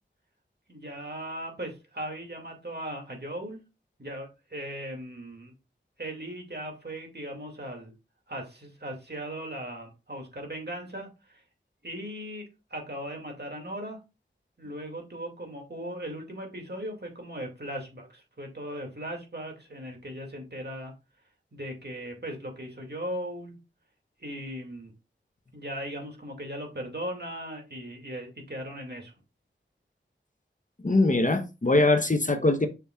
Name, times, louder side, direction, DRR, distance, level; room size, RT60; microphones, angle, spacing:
voice 1, 0.7-3.6 4.0-5.5 6.0-7.9 8.3-11.4 11.8-14.0 14.6-20.9 21.5-23.6 24.2-24.9 25.5-29.1, right 1 dB, 55° right, 2.3 m, -38 dB
voice 2, 30.8-32.7, left 2 dB, 40° left, 0.9 m, -22 dB
6.8 x 6.0 x 2.4 m
wide cardioid pair, 50°, 20 cm